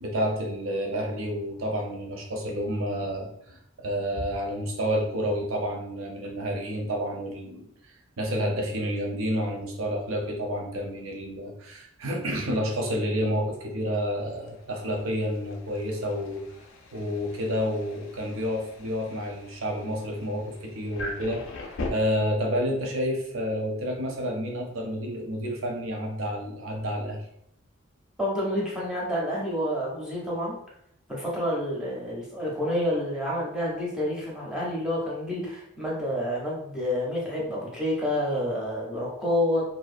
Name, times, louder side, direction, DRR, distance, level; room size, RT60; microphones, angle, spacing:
voice 1, 0.0-7.7 8.2-16.5 16.9-27.2, equal, 75° right, 0 dB, 0.6 m, -29 dB
Thunder, 13.8-21.9, left 3 dB, 70° left, 0.4 m, -43 dB
voice 2, 28.2-30.5 31.1-39.6, left 1 dB, 5° right, -5 dB, 0.5 m, -28 dB
2.6 x 2.1 x 2.4 m, 0.74 s
head